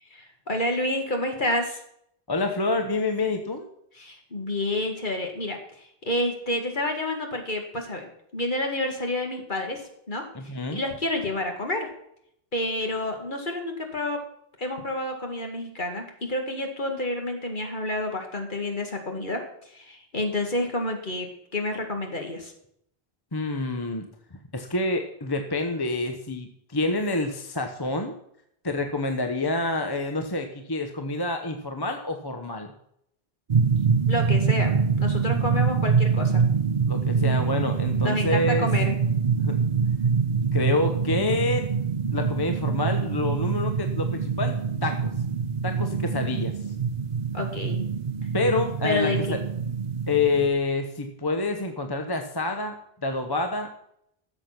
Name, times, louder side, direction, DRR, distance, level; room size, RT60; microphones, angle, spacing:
voice 1, 0.1-1.8 4.0-9.8 10.1-11.9 12.5-14.2 14.6-22.5 34.1-34.7 35.0-36.4 38.0-39.0 47.3-47.8 48.8-49.4, left 1 dB, 50° left, 3 dB, 2.2 m, -29 dB
voice 2, 2.3-3.7 10.3-10.8 23.3-24.1 24.5-28.2 28.6-32.7 36.9-38.7 39.4-39.6 40.5-41.6 42.1-45.1 45.6-46.5 48.3-49.4 50.1-53.7, left 2 dB, 25° left, 5 dB, 1.0 m, -27 dB
sound 1, 33.5-50.5, right 6 dB, 45° right, 0.8 m, -25 dB
13.0 x 7.6 x 5.9 m, 0.72 s
omnidirectional pair, 1.1 m